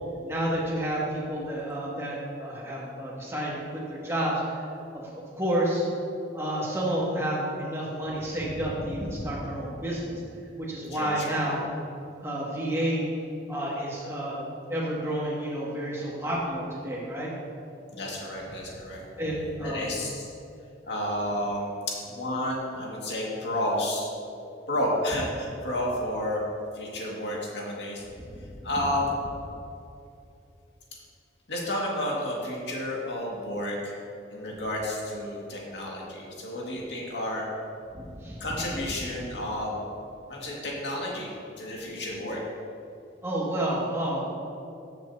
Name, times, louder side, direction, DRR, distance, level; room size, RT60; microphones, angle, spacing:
voice 1, 0.2-4.3 4.9-5.9 6.3-10.1 10.6-11.6 12.2-13.0 13.5-14.4 14.7-17.3 19.2-19.9 38.2-38.4 43.2-44.2, right 1 dB, 15° right, -6 dB, 1.9 m, -30 dB
voice 2, 10.9-11.4 17.9-19.0 19.6-20.3 20.8-21.7 22.1-24.1 24.7-26.4 26.7-28.0 28.6-29.2 31.5-34.0 34.3-37.4 38.4-39.8 40.3-42.4, left 1 dB, 70° left, -3 dB, 2.0 m, -31 dB
14.0 x 7.5 x 2.8 m, 2.7 s
head